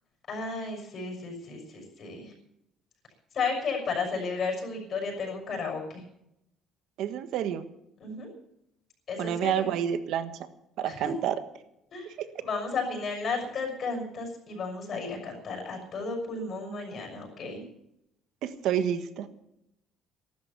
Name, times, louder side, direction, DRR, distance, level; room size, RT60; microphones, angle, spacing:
voice 1, 0.3-2.3 3.3-6.0 8.0-8.3 9.1-9.7 10.9-11.1 11.9-12.1 12.4-17.6, left 4 dB, 45° left, 2 dB, 6.2 m, -33 dB
voice 2, 7.0-7.7 9.2-10.3 10.8-11.4 12.2-12.3 18.4-19.3, right 9 dB, 70° right, 10 dB, 1.5 m, -29 dB
14.0 x 12.5 x 7.0 m, 0.80 s
cardioid pair, 130°, 0 cm